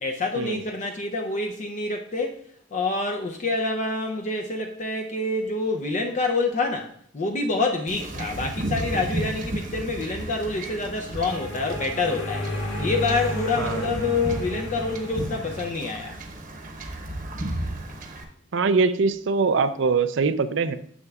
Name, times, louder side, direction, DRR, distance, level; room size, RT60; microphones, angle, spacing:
voice 1, 0.0-2.4 2.7-12.5 12.8-16.2, left 3 dB, 40° left, 3 dB, 0.5 m, -27 dB
Wind / Ocean / Boat Water vehicle, 7.9-18.2, right 1 dB, 45° right, 1.0 m, -34 dB
sound 1, 10.5-15.7, left 1 dB, 85° left, 1.8 m, -33 dB
voice 2, 13.6-13.9 18.5-20.7, right 4 dB, 65° right, 12 dB, 0.5 m, -23 dB
9.6 x 7.0 x 2.4 m, 0.63 s
head